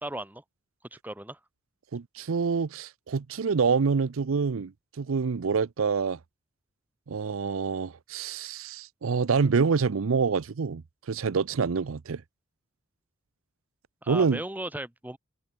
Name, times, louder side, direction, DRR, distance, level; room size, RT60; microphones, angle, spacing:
voice 1, 0.0-0.4 0.9-1.4 14.0-15.2, right 1 dB, 10° right, 1.4 m, -36 dB
voice 2, 1.9-4.7 5.0-6.2 7.1-12.2 14.1-14.4, right 5 dB, 80° right, 0.5 m, -26 dB
head